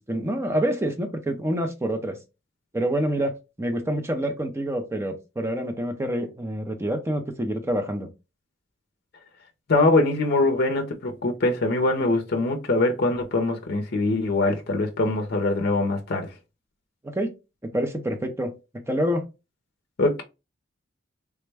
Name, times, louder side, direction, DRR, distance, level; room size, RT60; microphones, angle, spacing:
voice 1, 0.0-2.2 2.7-8.1 17.1-17.3 17.6-19.3, right 1 dB, 15° right, 0.5 m, -27 dB
voice 2, 9.7-16.3 20.0-20.2, left 2 dB, 55° left, 0.5 m, -23 dB
3.4 x 2.1 x 3.3 m
head